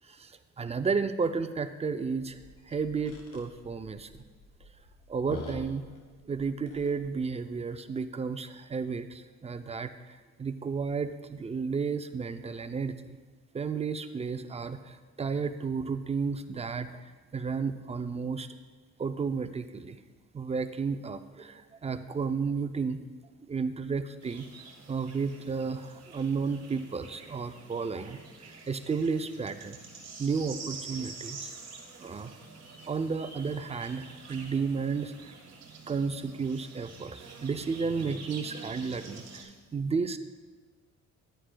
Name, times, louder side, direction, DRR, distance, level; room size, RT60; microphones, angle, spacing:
voice 1, 0.0-2.4 2.7-4.1 5.1-5.8 6.3-13.2 13.5-18.5 19.0-20.0 20.3-23.0 23.5-24.5 24.9-29.8 30.2-31.5 32.0-32.3 32.9-35.3 35.9-40.2, right 5 dB, 20° right, 10 dB, 0.4 m, -32 dB
sound 1, 2.1-7.2, left 3 dB, 75° left, 1.3 m, -47 dB
sound 2, 24.2-39.4, right 4 dB, 60° right, 1.5 m, -47 dB
10.5 x 9.2 x 2.2 m, 1.3 s
cardioid pair, 90°, 30 cm